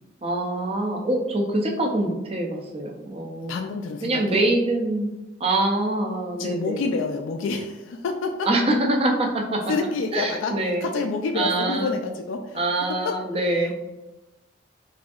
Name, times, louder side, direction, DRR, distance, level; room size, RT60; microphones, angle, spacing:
voice 1, 0.2-3.6 4.0-5.1 5.4-6.8 8.5-9.6 10.1-10.9 11.4-11.9 12.5-13.7, right 2 dB, 30° right, 1 dB, 0.5 m, -24 dB
voice 2, 3.4-4.5 6.4-8.5 9.7-12.6 13.0-13.1 13.6-13.8, left 4 dB, 85° left, 4 dB, 0.3 m, -28 dB
4.8 x 2.7 x 2.4 m, 1.0 s
head